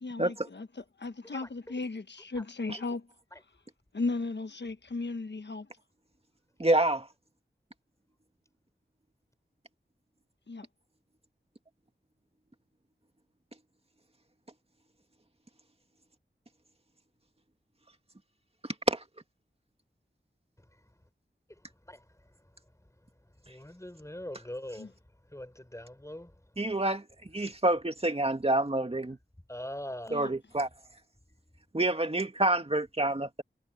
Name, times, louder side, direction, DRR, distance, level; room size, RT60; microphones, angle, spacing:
voice 1, 0.0-3.1 3.9-5.7 10.5-10.7 24.8-24.9 30.1-30.3, left 3 dB, 65° left, 1.2 m, -36 dB
voice 2, 6.6-7.1 18.9-19.0 26.6-27.0 27.3-29.2 30.1-30.7 31.7-33.4, right 1 dB, 30° right, 2.2 m, -27 dB
voice 3, 23.5-24.9 25.3-26.3 29.5-30.3, left 1 dB, 15° left, 5.4 m, -41 dB
wide cardioid pair, 65°, 19 cm